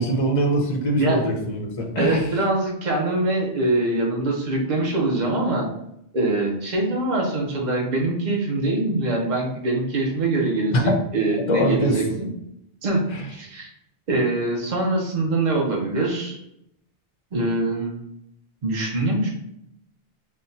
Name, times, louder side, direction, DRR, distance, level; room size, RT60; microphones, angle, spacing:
voice 1, 0.0-2.2 10.7-10.9 11.5-12.0 13.1-13.2, equal, 40° left, 1 dB, 0.7 m, -22 dB
voice 2, 2.0-5.7 6.1-12.3 12.8-13.7 14.1-16.4 17.3-18.0 18.6-19.3, right 2 dB, 50° right, -1 dB, 0.9 m, -23 dB
5.5 x 2.3 x 2.7 m, 0.78 s
omnidirectional pair, 1.0 m